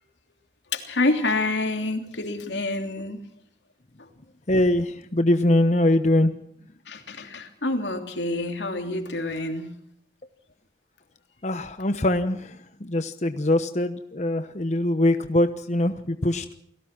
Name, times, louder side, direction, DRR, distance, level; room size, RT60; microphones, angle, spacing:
voice 1, 0.7-3.2 4.0-4.1 6.9-9.8, left 2 dB, 90° left, 5 dB, 3.2 m, -27 dB
voice 2, 4.5-6.3 11.4-16.5, left 1 dB, 40° left, 9 dB, 1.0 m, -23 dB
29.5 x 18.5 x 6.0 m, 0.70 s
head